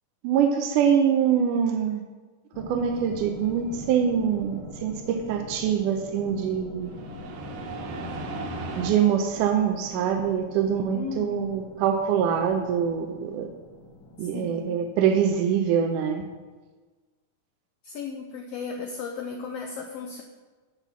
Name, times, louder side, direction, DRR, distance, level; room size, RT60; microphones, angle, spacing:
voice 1, 0.2-2.0 2.6-6.9 8.8-13.5 14.2-16.2, right 8 dB, 85° right, 4 dB, 2.2 m, -24 dB
sound 1, 2.5-15.4, left 2 dB, 45° left, 1.5 m, -44 dB
sound 2, 2.9-4.0 6.8-8.9, right 2 dB, 65° right, 1.6 m, -36 dB
voice 2, 10.9-11.6 14.3-14.8 17.8-20.2, left 5 dB, 75° left, 2 dB, 1.4 m, -35 dB
12.0 x 4.1 x 7.1 m, 1.3 s
omnidirectional pair, 3.7 m